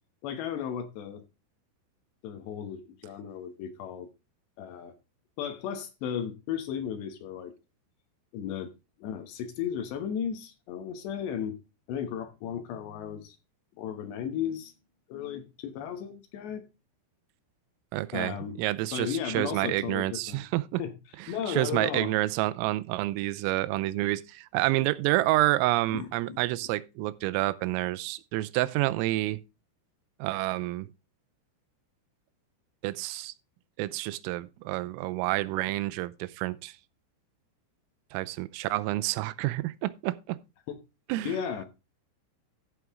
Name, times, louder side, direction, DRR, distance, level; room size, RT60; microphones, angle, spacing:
voice 1, 0.2-1.2 2.2-4.1 4.6-4.9 5.4-7.5 8.3-8.7 9.0-11.6 11.9-13.4 13.8-14.7 15.1-16.6 18.1-18.6 18.9-20.4 20.8-20.9 21.3-22.1 25.9-26.4 40.7-40.8 41.2-41.6, left 8 dB, 70° left, 3.0 m, -35 dB
voice 2, 17.9-20.8 21.5-29.4 30.2-30.9 32.8-33.3 33.8-36.8 38.1-40.4 41.1-41.4, right 18 dB, 90° right, 3.4 m, -29 dB
14.0 x 6.2 x 3.6 m
omnidirectional pair, 5.8 m